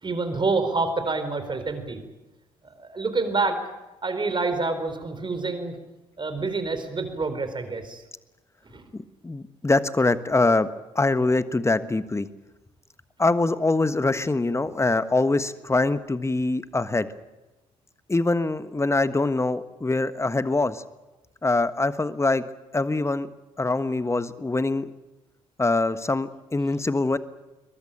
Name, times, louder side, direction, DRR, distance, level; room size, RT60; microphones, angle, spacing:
voice 1, 0.0-2.0 2.6-3.6 4.0-5.8 6.2-8.0 8.7-8.8, right 3 dB, 30° right, 8 dB, 4.3 m, -27 dB
voice 2, 8.9-10.7 10.9-12.3 13.2-17.1 18.1-20.8 21.4-22.4 22.7-23.3 23.6-24.9 25.6-27.2, left 2 dB, 15° left, 13 dB, 1.4 m, -23 dB
22.5 x 21.5 x 8.9 m, 1.0 s
figure-of-eight pair, 45°, 16 cm